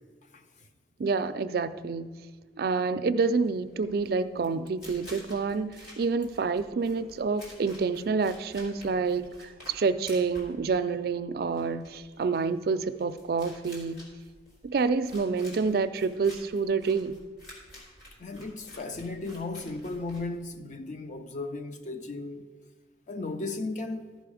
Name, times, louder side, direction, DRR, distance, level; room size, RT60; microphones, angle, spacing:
voice 1, 1.0-2.1 2.6-14.0 14.6-17.1, right 4 dB, 55° right, 0.4 m, -28 dB
sound 1, 3.4-20.7, equal, 60° left, 3.4 m, -51 dB
voice 2, 18.2-22.4 23.1-24.1, left 3 dB, 45° left, 0.6 m, -35 dB
14.0 x 5.3 x 4.9 m
head